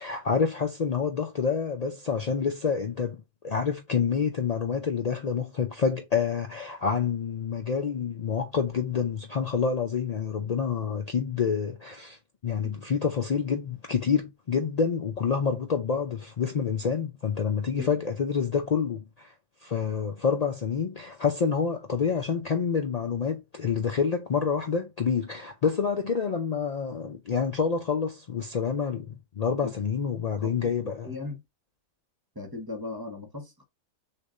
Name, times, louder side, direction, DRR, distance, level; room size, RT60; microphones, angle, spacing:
voice 1, 0.0-12.2 12.4-19.3 19.6-31.2, left 6 dB, 75° left, 0.3 m, -28 dB
voice 2, 30.8-31.4 32.3-33.6, left 3 dB, 20° right, 0.9 m, -38 dB
6.6 x 2.5 x 2.5 m
omnidirectional pair, 1.5 m